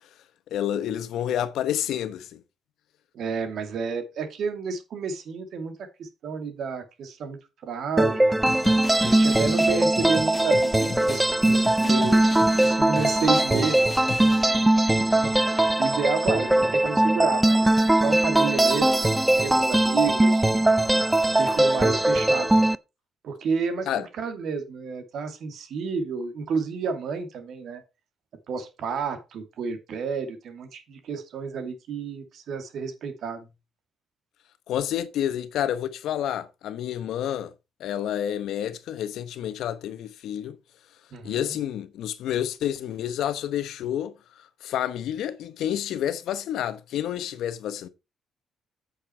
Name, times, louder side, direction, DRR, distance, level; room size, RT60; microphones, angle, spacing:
voice 1, 0.5-2.4 23.9-24.1 34.7-37.5 37.8-40.6 41.2-44.1 44.6-47.9, left 10 dB, 80° left, 1.0 m, -29 dB
voice 2, 3.1-8.3 9.0-13.9 14.2-14.3 15.0-15.3 15.8-20.4 21.2-22.5 23.2-27.8 28.5-33.5 41.1-41.6, right 5 dB, 70° right, 2.4 m, -31 dB
sound 1, 8.0-22.8, right 1 dB, 10° right, 0.5 m, -21 dB
sound 2, 8.5-14.5, left 5 dB, 40° left, 0.7 m, -37 dB
8.8 x 6.6 x 4.4 m
cardioid pair, 90°, 0 cm